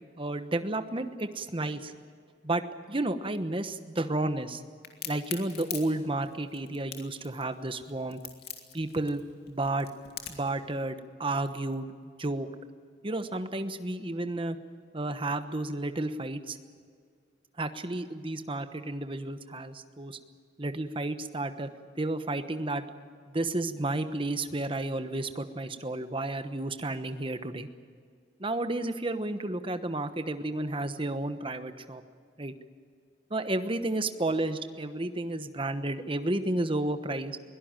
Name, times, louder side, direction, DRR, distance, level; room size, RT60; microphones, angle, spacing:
voice 1, 0.2-1.9 2.4-2.6 2.9-4.6 5.1-8.2 8.7-9.2 9.5-9.9 10.3-11.9 12.2-12.5 13.0-14.6 14.9-16.6 17.6-20.2 20.6-21.7 22.0-22.8 23.3-27.7 28.4-32.0 32.4-32.5 33.3-37.4, right 2 dB, 30° right, 9 dB, 1.1 m, -32 dB
Crack, 4.8-10.5, left 10 dB, 60° left, 2.6 m, -41 dB
22.5 x 17.5 x 8.9 m, 2.1 s
head